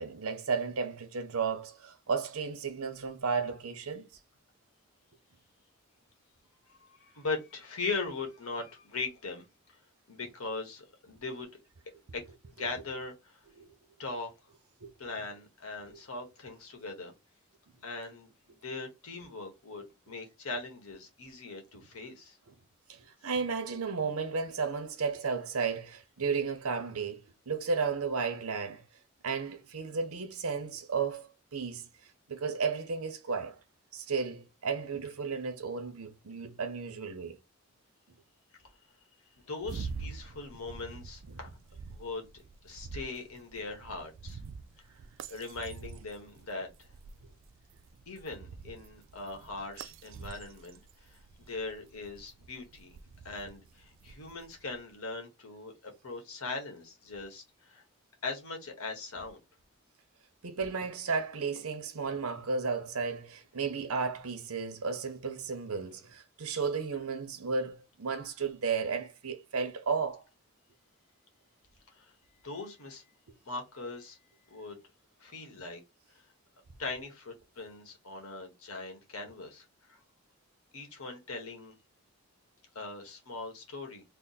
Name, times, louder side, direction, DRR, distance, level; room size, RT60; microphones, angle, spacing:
voice 1, 0.0-4.1 13.6-13.7 14.8-14.9 22.9-27.2 27.5-28.8 29.2-31.9 32.3-33.6 33.9-37.4 60.4-70.2, right 5 dB, 85° right, 0.8 m, -33 dB
voice 2, 6.7-9.4 10.1-11.5 12.1-12.2 12.6-13.4 14.0-14.3 15.0-17.1 17.8-22.4 39.5-41.6 41.9-42.3 42.6-44.4 45.3-46.9 48.1-51.2 51.5-52.9 53.2-57.8 58.2-59.4 71.9-72.1 72.4-73.0 73.4-74.2 74.5-74.8 75.2-75.8 76.1-76.2 76.8-80.0 80.7-81.7 82.7-84.0, left 3 dB, 80° left, 1.4 m, -40 dB
sound 1, 39.6-54.8, right 5 dB, 60° right, 0.3 m, -46 dB
3.4 x 2.1 x 4.1 m
head